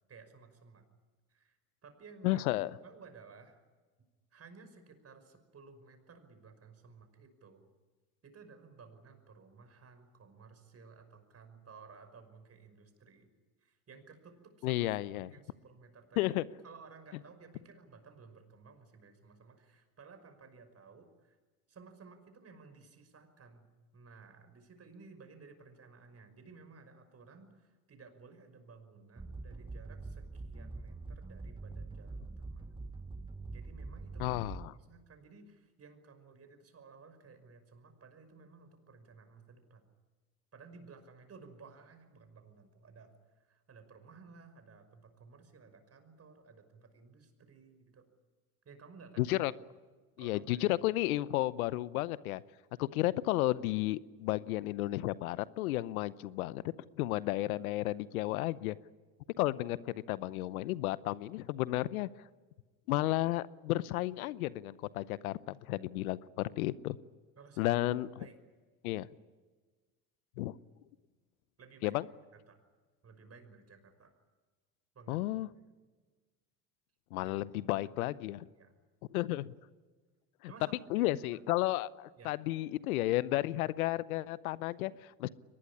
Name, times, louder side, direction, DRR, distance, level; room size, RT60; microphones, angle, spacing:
voice 1, 0.1-0.8 1.3-1.6 1.8-2.4 2.8-3.6 4.3-7.7 8.2-13.3 13.6-14.9 15.3-16.3 16.6-21.4 21.7-23.7 23.9-32.7 33.5-34.4 34.7-39.9 40.5-48.1 48.6-49.4 50.2-50.7 67.4-67.8 68.2-68.4 71.6-72.0 72.3-72.6 73.0-74.1 74.9-75.6 77.2-78.2 78.5-78.8 80.5-81.5 82.2-82.4, right 4 dB, 35° right, 8 dB, 5.8 m, -56 dB
voice 2, 2.2-2.7 14.6-15.3 16.2-16.4 34.2-34.7 49.2-49.5 50.2-52.4 52.8-56.6 57.0-58.8 59.4-62.1 62.9-67.0 67.6-68.1 68.8-69.1 70.4-70.5 71.8-72.0 75.1-75.5 77.1-78.4 79.1-79.5 80.4-80.5 80.9-85.3, left 16 dB, 80° left, 19 dB, 0.8 m, -32 dB
sound 1, 29.2-35.0, right 3 dB, 10° right, 1.1 m, -44 dB
23.0 x 20.0 x 9.9 m, 1.4 s
hypercardioid pair, 80°, 43 cm